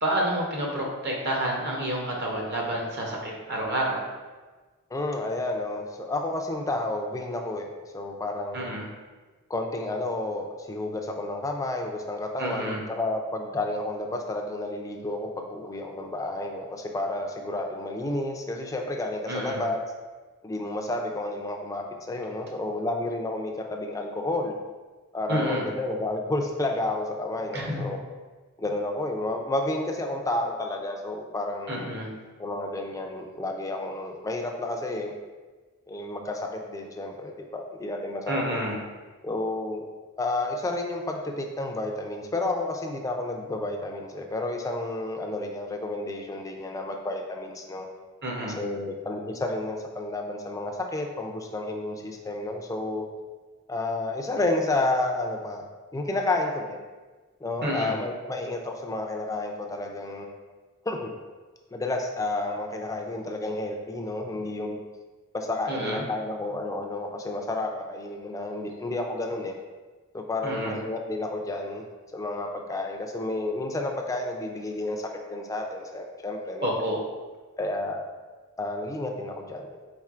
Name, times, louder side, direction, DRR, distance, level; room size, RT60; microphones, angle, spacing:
voice 1, 0.0-4.0 8.5-8.9 12.4-12.8 19.3-19.7 25.3-25.6 27.5-27.8 31.7-32.1 38.3-38.8 48.2-48.6 57.6-57.9 65.7-66.0 70.4-70.8 76.6-77.0, right 1 dB, 50° right, -1 dB, 0.8 m, -29 dB
voice 2, 4.9-8.8 9.5-19.8 20.4-24.6 25.1-28.0 28.6-31.9 32.4-35.2 35.9-38.6 39.2-39.9 40.2-47.9 48.4-53.0 53.7-55.6 55.9-56.8 57.4-60.4 60.9-61.1 61.7-64.8 65.3-69.5 70.1-71.8 72.1-76.7 77.6-78.0 78.6-79.7, left 2 dB, 15° left, 2 dB, 0.4 m, -31 dB
4.3 x 3.8 x 2.4 m, 1.3 s
head